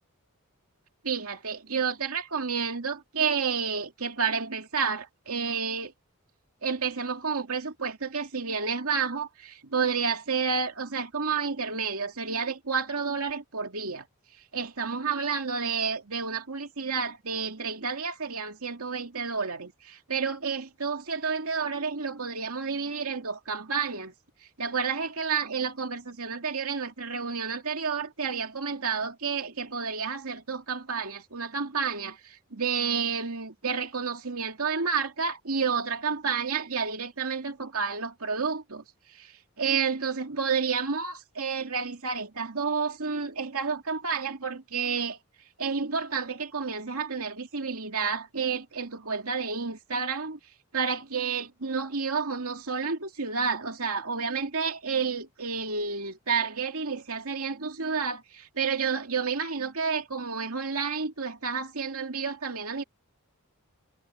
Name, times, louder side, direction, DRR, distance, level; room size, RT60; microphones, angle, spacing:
voice 1, 1.0-5.9 6.6-14.0 14.5-24.1 24.6-38.8 39.1-39.3 39.6-45.2 45.6-50.4 50.7-62.8, right 5 dB, 80° right, 2.5 m, -30 dB
head